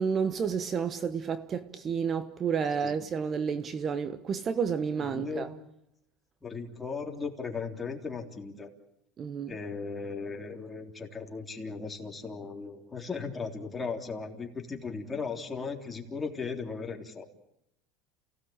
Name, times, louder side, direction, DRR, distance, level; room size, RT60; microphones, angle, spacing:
voice 1, 0.0-5.5 9.2-9.5, right 6 dB, 35° right, 1.1 m, -30 dB
voice 2, 5.0-5.6 6.4-8.7 9.5-17.2, left 4 dB, 15° left, 3.5 m, -37 dB
29.5 x 17.5 x 8.9 m
supercardioid pair, 125°, 0 cm